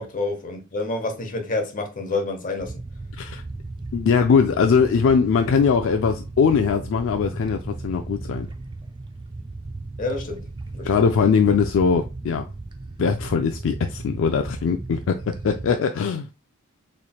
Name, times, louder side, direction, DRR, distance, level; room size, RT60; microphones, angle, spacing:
voice 1, 0.0-2.8 10.0-10.4 10.7-11.0, left 3 dB, 40° left, 0.9 m, -28 dB
sound 1, 2.6-15.7, right 2 dB, 20° right, 0.4 m, -36 dB
voice 2, 3.9-8.5 10.8-12.5 13.0-16.3, left 6 dB, 65° left, 0.3 m, -21 dB
4.2 x 3.2 x 2.3 m
head